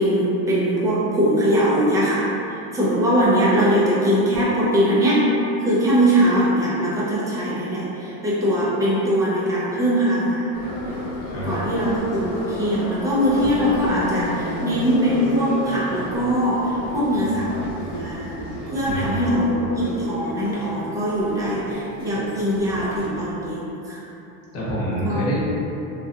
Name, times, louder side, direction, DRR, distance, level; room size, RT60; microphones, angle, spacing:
voice 1, 0.0-5.3 5.6-10.5 11.4-17.5 17.9-18.4 18.7-24.0 25.0-25.2, equal, 10° right, -8 dB, 0.4 m, -21 dB
Subway metro underground, 10.5-23.1, left 1 dB, 90° left, 1.0 m, -32 dB
voice 2, 18.9-19.2 24.5-25.4, equal, 35° left, -7 dB, 1.0 m, -26 dB
3.4 x 2.3 x 2.6 m, 2.9 s
supercardioid pair, 140°, 42 cm